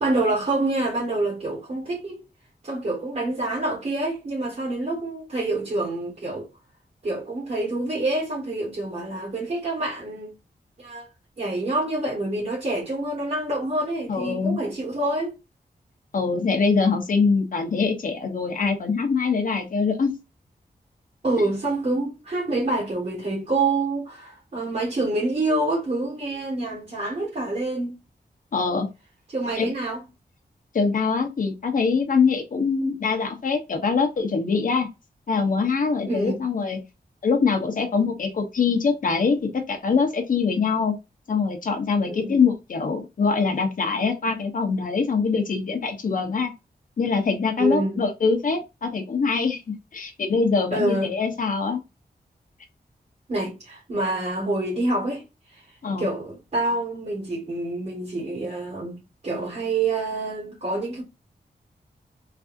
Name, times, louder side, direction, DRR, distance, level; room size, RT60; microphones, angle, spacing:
voice 1, 0.0-2.2 2.6-6.5 7.0-10.3 10.8-11.1 11.4-15.4 21.2-28.0 29.3-30.0 36.0-36.4 42.0-42.4 47.6-48.0 50.7-51.1 53.3-55.2 55.5-61.0, right 2 dB, 45° right, 1.3 m, -27 dB
voice 2, 14.1-14.6 16.1-20.2 28.5-28.9 29.6-29.7 30.7-34.9 35.3-36.8 37.2-40.9 41.3-46.5 47.0-49.6 49.9-51.8 55.8-56.1, left 5 dB, 55° left, 0.8 m, -23 dB
3.3 x 2.6 x 2.5 m
wide cardioid pair, 165°, 16 cm